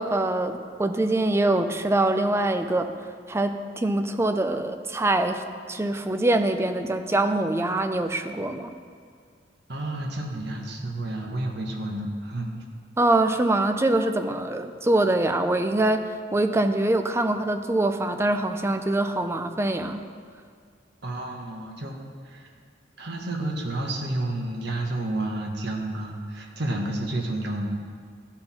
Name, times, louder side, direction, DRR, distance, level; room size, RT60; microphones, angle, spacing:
voice 1, 0.0-2.9 3.3-5.4 5.7-8.7 13.0-20.0, right 2 dB, 15° right, 7 dB, 0.4 m, -24 dB
voice 2, 9.7-12.6 21.0-22.0 22.2-22.5 23.0-27.8, right 1 dB, 65° right, 0 dB, 1.3 m, -30 dB
13.0 x 4.4 x 5.7 m, 2.1 s
head